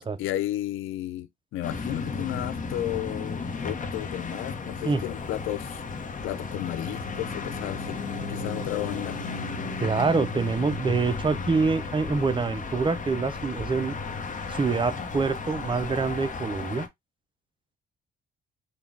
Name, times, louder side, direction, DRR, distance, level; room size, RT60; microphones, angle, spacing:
voice 1, 0.0-5.8 6.2-9.2, left 14 dB, 90° left, 0.5 m, -33 dB
sound 1, 1.6-16.9, left 4 dB, 40° left, 0.9 m, -34 dB
voice 2, 9.8-13.9 14.5-16.9, right 4 dB, 25° right, 0.5 m, -26 dB
4.0 x 2.3 x 3.4 m
cardioid pair, 90°, 20 cm